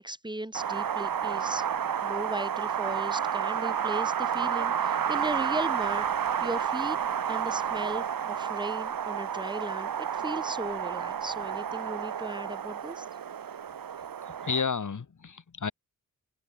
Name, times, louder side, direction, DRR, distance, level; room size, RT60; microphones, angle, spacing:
voice 1, 0.0-1.7 2.0-6.1 6.4-7.0 7.3-13.0, right 1 dB, 15° right, 6.3 m, -37 dB
Wind, 0.5-14.6, right 8 dB, 80° right, 1.9 m, -30 dB
voice 2, 14.3-15.7, left 5 dB, 60° left, 4.4 m, -31 dB
cardioid pair, 75°, 34 cm